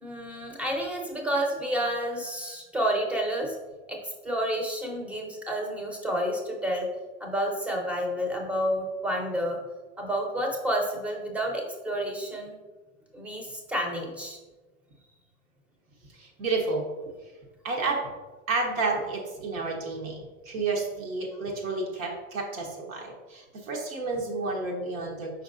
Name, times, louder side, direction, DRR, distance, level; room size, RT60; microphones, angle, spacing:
voice 1, 0.0-3.6 3.9-6.9 7.2-9.6 10.0-12.5 13.1-14.4, equal, 5° right, 1 dB, 0.4 m, -30 dB
voice 2, 16.1-16.9 17.6-18.1 18.5-25.4, right 3 dB, 85° right, -1 dB, 1.2 m, -31 dB
5.2 x 4.1 x 2.5 m, 1.2 s
supercardioid pair, 130°, 39 cm